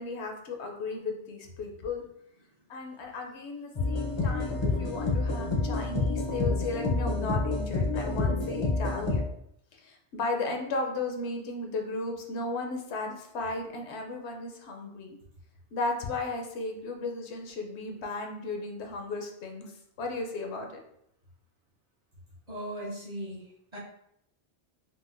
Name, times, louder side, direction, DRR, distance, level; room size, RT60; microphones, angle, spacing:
voice 1, 0.0-2.0 2.7-9.2 9.8-15.2 15.7-19.7 20.0-20.7, left 3 dB, 75° left, 2 dB, 0.9 m, -35 dB
sound 1, 3.8-9.2, left 3 dB, 35° left, 0.5 m, -28 dB
voice 2, 5.4-5.9 22.5-23.5 23.7-23.8, right 1 dB, 40° right, -5 dB, 0.7 m, -39 dB
4.0 x 2.1 x 2.5 m, 0.74 s
omnidirectional pair, 1.2 m